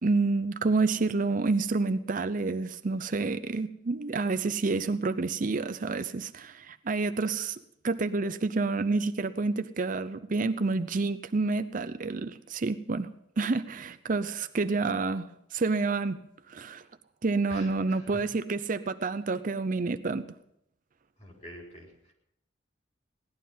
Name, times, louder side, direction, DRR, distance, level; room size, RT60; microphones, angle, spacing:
voice 1, 0.0-7.6 7.8-13.1 13.4-16.8 17.2-20.3, right 3 dB, 45° right, 11 dB, 0.6 m, -29 dB
voice 2, 17.5-18.2 21.2-22.1, equal, 35° left, 0 dB, 4.1 m, -47 dB
17.5 x 11.5 x 5.6 m, 0.77 s
head